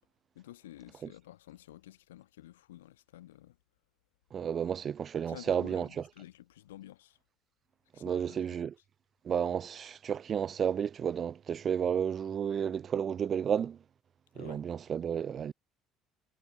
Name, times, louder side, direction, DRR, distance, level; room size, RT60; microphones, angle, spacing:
voice 1, 0.4-3.6 5.3-7.2 7.9-8.7 14.3-14.6, left 14 dB, 75° left, 1.9 m, -51 dB
voice 2, 4.3-5.9 8.0-8.7 9.2-13.8 14.4-15.5, right 8 dB, 40° right, 1.4 m, -32 dB
figure-of-eight pair, 55°, 0 cm